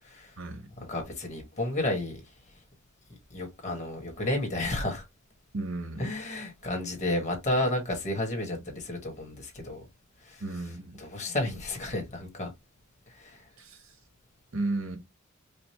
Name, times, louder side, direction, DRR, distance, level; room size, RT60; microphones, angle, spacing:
voice 1, 0.4-0.7 5.5-6.2 10.4-11.0 13.6-13.9 14.5-15.0, right 2 dB, 85° right, 1.2 m, -34 dB
voice 2, 0.9-2.2 3.3-5.0 6.0-9.8 10.2-10.4 11.0-12.5 13.1-13.4, left 1 dB, 35° left, 1.5 m, -31 dB
5.1 x 2.1 x 3.0 m
head